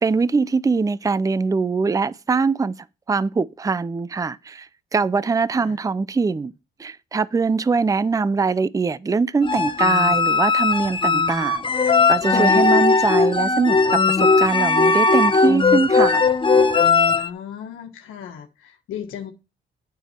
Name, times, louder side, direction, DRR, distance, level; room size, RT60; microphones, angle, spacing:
voice 1, 0.0-2.7 3.1-6.5 6.8-16.2, right 4 dB, 15° right, 0.5 m, -22 dB
sound 1, 9.4-17.3, left 4 dB, 25° left, 1.1 m, -18 dB
voice 2, 17.1-19.3, left 9 dB, 85° left, 1.4 m, -36 dB
9.0 x 6.9 x 4.4 m
cardioid pair, 90°, 20 cm